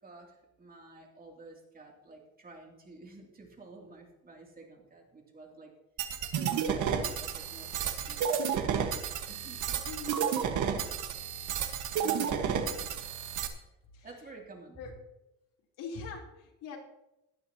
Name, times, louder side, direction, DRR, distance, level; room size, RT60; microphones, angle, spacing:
voice 1, 0.0-5.7 6.3-8.8 9.3-9.8 10.0-10.3 11.7-12.7 13.6-13.7 14.0-14.8, right 3 dB, 30° right, 0 dB, 2.9 m, -51 dB
sound 1, 6.0-13.5, right 7 dB, 70° right, 1.6 m, -31 dB
voice 2, 9.8-10.2 12.1-12.9 13.9-14.1 14.8-14.9 15.8-16.8, left 5 dB, 90° left, -1 dB, 3.6 m, -43 dB
17.5 x 11.5 x 3.0 m, 0.89 s
cardioid pair, 140°, 32 cm